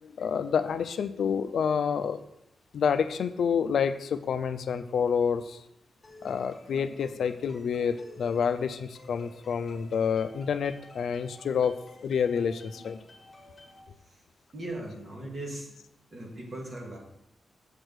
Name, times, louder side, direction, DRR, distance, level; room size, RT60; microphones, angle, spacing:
voice 1, 0.0-2.2 2.7-5.6 6.2-11.8 12.0-13.0, left 7 dB, 75° left, 10 dB, 0.5 m, -28 dB
sound 1, 6.0-13.8, left 2 dB, 30° left, 2.0 m, -52 dB
voice 2, 14.5-15.7 16.1-17.0, right 1 dB, 30° right, -2 dB, 2.2 m, -38 dB
7.4 x 4.9 x 6.2 m, 0.75 s
wide cardioid pair, 170°, 0 cm